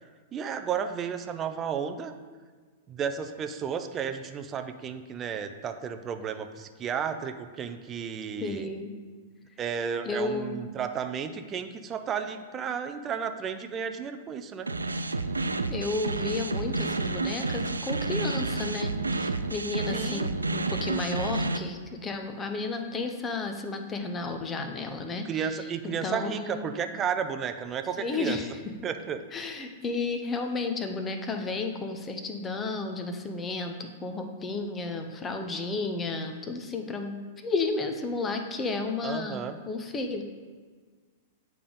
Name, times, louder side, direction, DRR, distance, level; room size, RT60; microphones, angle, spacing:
voice 1, 0.3-2.1 2.9-8.7 9.6-14.7 19.9-20.3 25.3-28.4 28.8-29.2 39.0-39.6, right 7 dB, 25° right, 7 dB, 0.5 m, -33 dB
voice 2, 8.4-8.9 10.0-10.5 15.4-26.7 28.0-28.6 29.3-37.2 37.4-40.2, left 3 dB, 20° left, 5 dB, 0.7 m, -32 dB
sound 1, 14.7-21.6, right 3 dB, 80° right, 0.3 m, -30 dB
8.5 x 3.5 x 5.2 m, 1.5 s
figure-of-eight pair, 100°, 0 cm